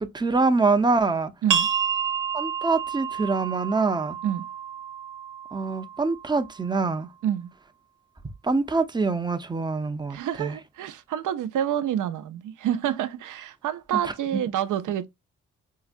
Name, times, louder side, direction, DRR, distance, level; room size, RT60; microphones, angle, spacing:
voice 1, 0.0-1.3 2.3-4.2 5.5-7.1 8.4-10.6 13.9-14.0, right 3 dB, 15° right, 0.6 m, -25 dB
sound 1, 1.5-6.9, right 8 dB, 90° right, 1.0 m, -30 dB
voice 2, 10.1-15.1, right 10 dB, 70° right, 0.6 m, -28 dB
4.7 x 2.1 x 2.5 m
cardioid pair, 85°, 31 cm